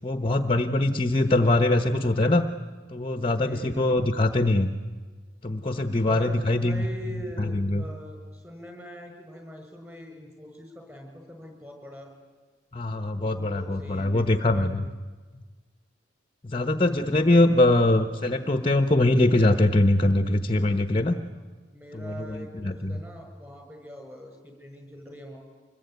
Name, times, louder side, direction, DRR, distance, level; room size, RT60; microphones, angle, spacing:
voice 1, 0.0-2.4 2.9-4.7 5.4-6.9 7.4-7.8 12.7-14.9 16.4-21.2 21.9-23.0, left 2 dB, 30° left, 9 dB, 1.0 m, -23 dB
voice 2, 3.4-4.0 6.0-12.1 13.2-14.7 21.2-21.4 21.7-25.4, equal, 15° right, 4 dB, 6.6 m, -43 dB
25.5 x 22.0 x 9.4 m, 1.4 s
head